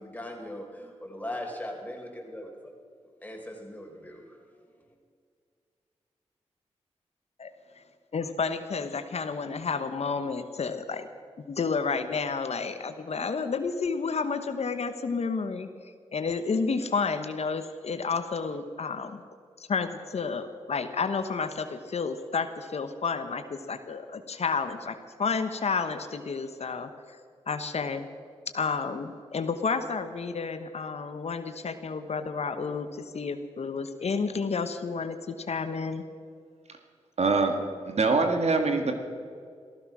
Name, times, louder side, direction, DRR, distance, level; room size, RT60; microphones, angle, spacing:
voice 1, 0.0-2.7 3.2-4.4 4.8-4.9, left 1 dB, 15° left, 1 dB, 4.4 m, -39 dB
voice 2, 8.1-11.1 11.5-19.2 19.6-27.2 27.5-28.1 28.5-36.0, left 5 dB, 65° left, 9 dB, 1.0 m, -31 dB
voice 3, 37.2-37.6 37.8-38.9, right 3 dB, 65° right, 5 dB, 1.8 m, -23 dB
15.0 x 14.5 x 6.1 m, 2.2 s
cardioid pair, 45°, 12 cm